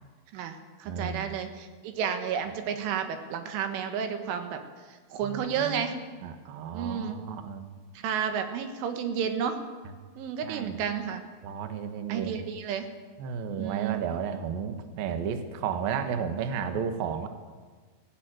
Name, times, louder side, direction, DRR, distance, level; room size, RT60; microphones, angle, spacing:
voice 1, 0.3-4.6 4.9-6.0 6.7-7.2 8.0-9.6 10.2-11.2 12.1-12.9 13.6-14.0, right 7 dB, 85° right, 7 dB, 4.0 m, -31 dB
voice 2, 0.9-1.4 5.2-5.8 6.2-7.6 10.4-10.8 11.4-12.4 13.2-17.3, right 7 dB, 65° right, 7 dB, 2.7 m, -33 dB
18.5 x 15.5 x 9.1 m, 1.4 s
omnidirectional pair, 5.5 m